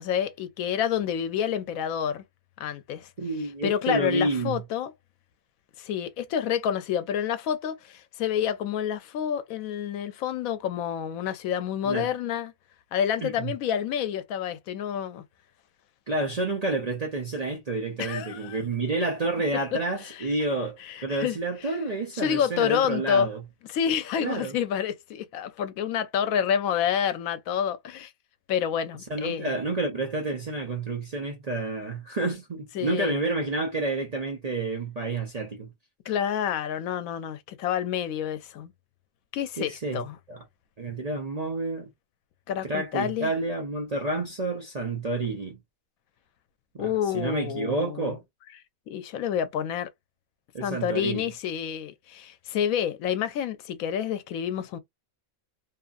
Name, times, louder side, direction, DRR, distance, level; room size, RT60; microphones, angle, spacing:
voice 1, 0.0-2.2 2.6-3.1 3.6-4.9 5.8-12.5 12.9-15.2 18.0-18.6 20.0-20.3 20.8-21.4 21.6-21.8 22.1-23.3 23.7-28.1 28.5-29.6 32.7-33.2 36.1-38.7 39.3-40.2 42.5-43.3 46.8-48.1 48.9-49.9 50.6-54.8, left 9 dB, 80° left, 1.0 m, -28 dB
voice 2, 3.2-4.6 11.8-12.1 13.2-13.5 16.1-23.4 24.2-24.5 29.1-35.7 39.6-40.4 40.8-41.9 42.6-45.6 46.7-48.2 50.5-51.2, right 2 dB, 45° right, 0.5 m, -29 dB
2.9 x 2.4 x 2.4 m
omnidirectional pair, 1.4 m